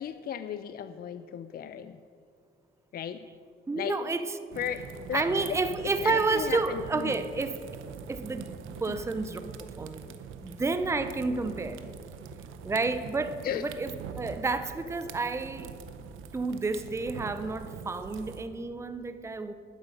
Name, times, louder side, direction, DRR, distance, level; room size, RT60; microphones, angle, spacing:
voice 1, 0.0-2.0 2.9-3.3 3.8-4.0 4.6-5.6 6.0-7.3 8.9-9.0 13.4-13.7, left 9 dB, 50° left, 11 dB, 0.4 m, -35 dB
voice 2, 3.7-4.8 5.1-7.6 8.1-8.5 8.8-10.1 10.4-11.8 12.6-15.7 16.3-19.5, right 3 dB, 15° right, 10 dB, 0.6 m, -30 dB
sound 1, 4.5-18.4, right 6 dB, 90° right, 0.7 m, -43 dB
11.5 x 9.1 x 5.4 m, 2.4 s
cardioid pair, 90°, 20 cm